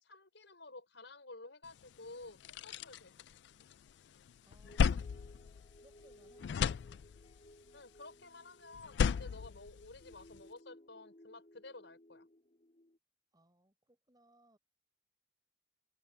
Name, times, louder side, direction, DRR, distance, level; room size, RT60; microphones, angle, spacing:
voice 1, 0.0-3.1 7.7-12.3, left 2 dB, 85° left, 4.8 m, -52 dB
sound 1, 1.8-1.9 2.2-3.9 4.3-6.1 6.4-7.5 8.7-10.4, left 6 dB, 70° left, 0.3 m, -35 dB
voice 2, 4.4-5.1 5.8-6.8 13.3-14.6, right 1 dB, 20° right, 6.7 m, -68 dB
sound 2, 4.6-13.0, left 1 dB, 40° left, 2.2 m, -61 dB
open air
head